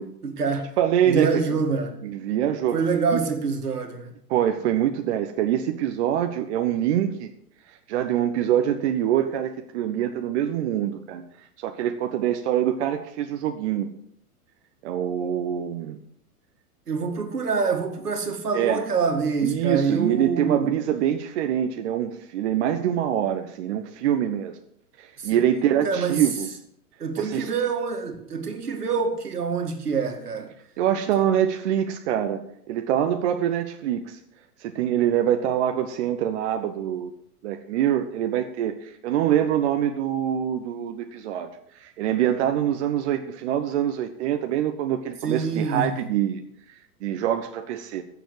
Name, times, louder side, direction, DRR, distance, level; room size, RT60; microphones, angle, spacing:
voice 1, 0.2-0.8 1.1-2.0 2.7-4.1 16.9-20.7 25.2-26.2 27.0-30.5 45.2-46.0, right 5 dB, 80° right, 2.2 m, -26 dB
voice 2, 0.8-1.3 2.0-2.8 3.1-3.2 4.3-7.3 7.9-11.2 11.6-13.9 14.8-16.0 18.5-18.8 19.4-24.6 25.0-26.5 27.2-27.5 30.8-32.4 32.7-34.2 34.6-37.1 37.4-46.4 46.7-48.0, right 10 dB, 45° right, 1.1 m, -25 dB
15.5 x 7.2 x 6.4 m
figure-of-eight pair, 105°, 46 cm